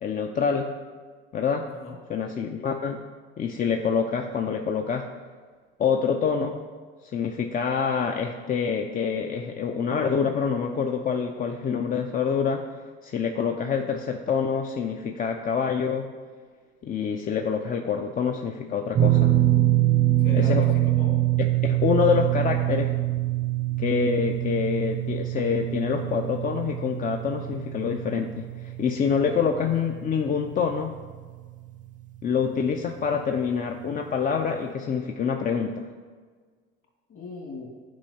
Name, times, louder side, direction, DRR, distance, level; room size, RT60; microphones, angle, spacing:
voice 1, 0.0-0.7 1.3-1.7 2.1-3.0 3.4-5.1 5.8-6.6 7.0-12.7 13.0-16.1 16.8-19.4 20.3-20.6 21.6-22.9 23.8-31.0 32.2-35.9, left 6 dB, 30° left, 4 dB, 0.5 m, -26 dB
voice 2, 1.6-2.0 20.2-21.2 29.4-29.7 37.1-37.7, left 3 dB, 45° left, 0 dB, 2.0 m, -38 dB
sound 1, 18.9-31.2 31.4-31.7 33.4-33.5, right 14 dB, 30° right, 0.4 m, -25 dB
10.5 x 4.5 x 2.8 m, 1.5 s
hypercardioid pair, 75°, 29 cm